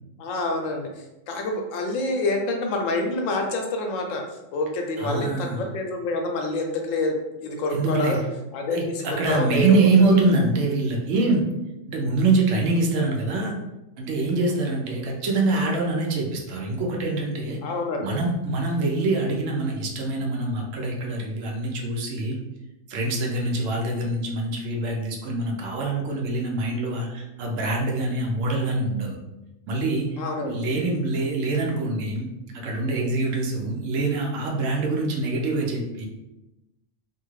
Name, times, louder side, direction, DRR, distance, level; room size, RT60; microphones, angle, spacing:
voice 1, 0.2-0.9 1.3-4.2 4.5-7.2 7.4-8.2 8.5-9.8 10.1-10.2 17.6-18.2 30.2-30.7, left 2 dB, 80° left, 2 dB, 0.9 m, -27 dB
voice 2, 5.0-5.6 7.7-8.2 8.7-11.4 11.9-13.5 14.0-17.6 18.0-22.4 22.9-29.2 29.7-32.3 32.5-36.1, right 2 dB, 75° right, 0 dB, 1.0 m, -24 dB
2.7 x 2.4 x 3.0 m, 0.98 s
omnidirectional pair, 1.3 m